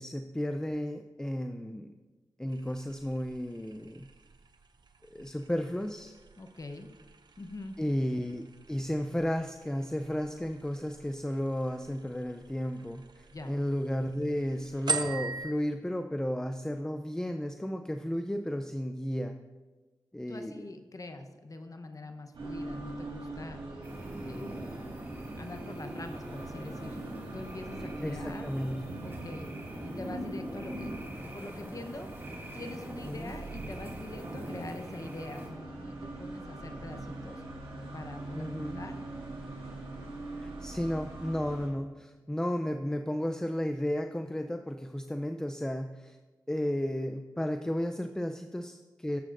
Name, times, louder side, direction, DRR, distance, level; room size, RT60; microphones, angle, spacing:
voice 1, 0.0-1.9 2.4-4.1 5.0-6.1 7.8-19.4 20.1-20.6 28.0-28.8 33.0-33.3 38.3-38.8 40.4-46.2 46.5-49.2, equal, 10° left, 6 dB, 0.5 m, -33 dB
sound 1, 2.5-15.5, right 4 dB, 60° right, 0.7 m, -43 dB
voice 2, 6.4-6.9 7.4-7.8 13.3-13.5 20.3-23.7 24.2-24.8 25.4-27.0 27.3-28.5 29.0-29.5 29.8-32.1 32.5-37.4 37.9-39.0, left 2 dB, 45° left, 6 dB, 0.9 m, -44 dB
sound 2, 22.3-41.7, right 2 dB, 90° right, 2.3 m, -43 dB
sound 3, 23.8-35.5, right 1 dB, 30° right, 2.3 m, -42 dB
15.0 x 7.4 x 2.6 m, 1.3 s
cardioid pair, 45°, 8 cm